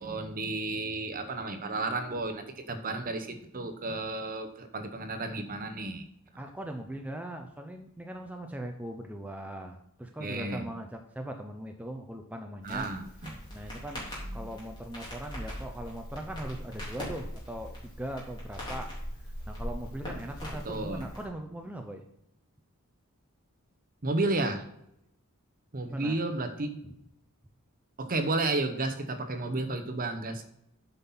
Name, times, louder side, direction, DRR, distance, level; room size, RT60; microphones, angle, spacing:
voice 1, 0.0-6.0 10.2-10.7 12.6-13.4 14.2-14.4 20.6-21.1 24.0-24.7 25.7-26.8 28.0-30.4, right 2 dB, 40° right, 8 dB, 0.9 m, -32 dB
voice 2, 6.4-12.9 13.5-14.1 14.3-18.9 19.5-22.0 25.9-26.2 26.8-26.9, right 1 dB, 5° right, 4 dB, 0.6 m, -40 dB
Crackle, 12.6-21.3, equal, 20° left, 3.3 m, -40 dB
8.0 x 5.7 x 5.6 m, 0.79 s
head